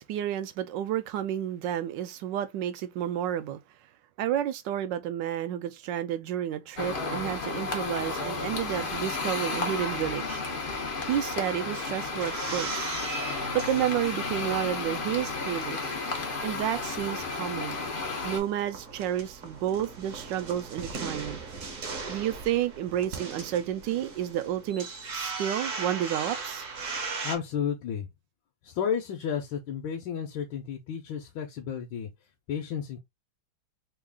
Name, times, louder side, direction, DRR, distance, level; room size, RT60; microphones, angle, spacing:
voice 1, 0.0-3.6 4.2-10.4 11.0-12.9 13.5-15.9 16.4-17.8 18.2-21.4 22.1-24.9 25.1-26.6, right 11 dB, 75° right, 1.1 m, -31 dB
sound 1, 6.8-18.4, left 3 dB, 60° left, 0.5 m, -33 dB
sound 2, 11.7-14.5 15.0-17.0 17.3-17.4 17.6-27.4, right 4 dB, 50° right, 1.0 m, -38 dB
voice 2, 27.2-28.1 28.6-32.1 32.5-33.0, left 8 dB, 75° left, 1.4 m, -32 dB
3.7 x 2.4 x 3.5 m
omnidirectional pair, 2.2 m